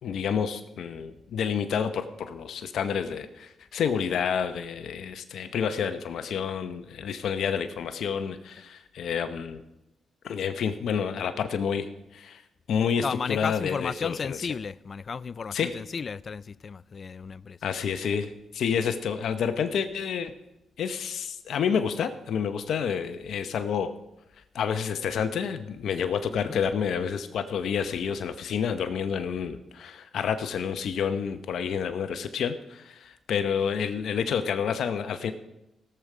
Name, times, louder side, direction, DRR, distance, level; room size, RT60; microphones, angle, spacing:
voice 1, 0.0-9.6 10.2-12.4 12.7-14.4 15.5-15.7 17.6-20.3 20.8-23.9 24.5-35.3, left 7 dB, 70° left, 0.8 m, -29 dB
voice 2, 13.0-17.6 18.8-18.9 26.3-26.6, left 5 dB, 50° left, 0.3 m, -34 dB
17.5 x 6.9 x 4.9 m
supercardioid pair, 65°, 0 cm